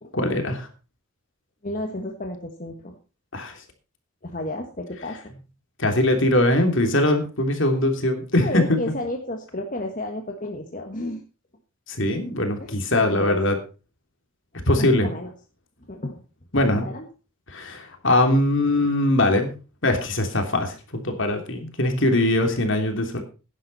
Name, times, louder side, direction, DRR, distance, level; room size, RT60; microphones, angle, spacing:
voice 1, 0.1-0.7 3.3-3.5 5.8-8.8 11.9-13.6 14.7-15.1 16.5-16.9 17.5-19.5 19.8-23.2, left 1 dB, 55° left, 5 dB, 3.1 m, -21 dB
voice 2, 1.6-2.9 4.2-5.2 8.4-11.2 12.6-13.4 14.8-15.3 15.9-16.2 16.8-17.0, left 1 dB, 35° left, 3 dB, 1.6 m, -31 dB
16.5 x 11.0 x 4.2 m, 0.33 s
head